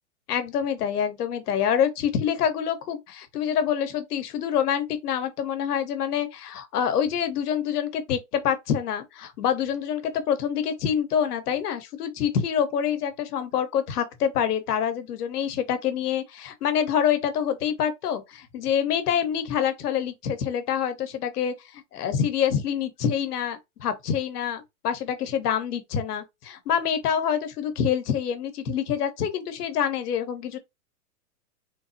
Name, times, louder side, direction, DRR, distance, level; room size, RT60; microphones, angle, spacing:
voice 1, 0.3-30.6, left 8 dB, 85° left, 0.9 m, -26 dB
3.2 x 2.0 x 2.6 m
hypercardioid pair, 150°, 46 cm